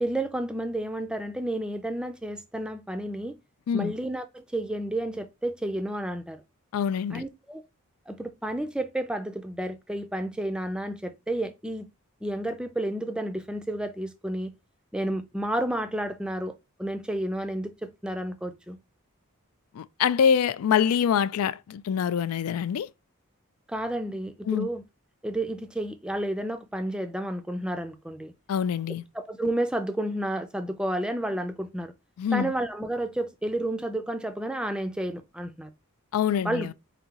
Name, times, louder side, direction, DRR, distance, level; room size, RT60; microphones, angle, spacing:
voice 1, 0.0-3.4 3.7-6.4 7.1-7.6 8.1-11.9 12.2-14.5 14.9-18.8 23.7-24.8 25.2-28.3 29.1-31.9 32.3-35.7 36.4-36.7, right 1 dB, 5° right, 0.4 m, -31 dB
voice 2, 6.7-7.2 19.7-22.9 24.5-24.7 28.5-29.0 32.2-32.5 36.1-36.7, left 8 dB, 85° left, 0.3 m, -25 dB
5.0 x 2.7 x 2.8 m
head